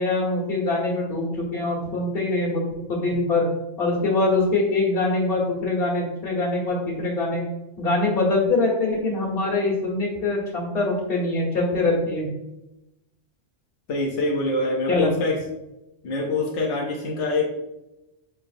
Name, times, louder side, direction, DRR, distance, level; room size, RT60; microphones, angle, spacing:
voice 1, 0.0-3.4 3.8-7.4 7.8-12.3 14.9-15.1, left 2 dB, 55° left, -4 dB, 1.5 m, -23 dB
voice 2, 13.9-15.4 16.0-17.6, left 2 dB, 90° left, -1 dB, 1.1 m, -25 dB
5.8 x 3.4 x 2.5 m, 0.95 s
omnidirectional pair, 1.2 m